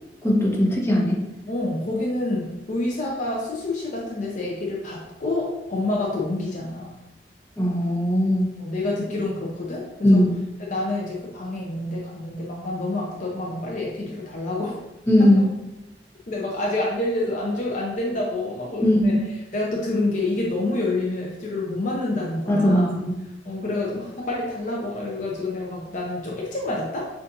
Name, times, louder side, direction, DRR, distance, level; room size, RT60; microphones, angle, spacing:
voice 1, 0.2-1.2 7.6-8.5 10.0-10.3 15.1-15.4 18.8-19.2 22.5-23.1, left 1 dB, 15° left, -4 dB, 1.0 m, -19 dB
voice 2, 1.5-6.9 8.6-10.2 10.7-14.8 15.2-15.3 16.3-19.2 19.5-23.0 23.4-27.1, left 2 dB, 45° left, -3 dB, 0.6 m, -28 dB
6.8 x 2.5 x 2.6 m, 0.94 s
head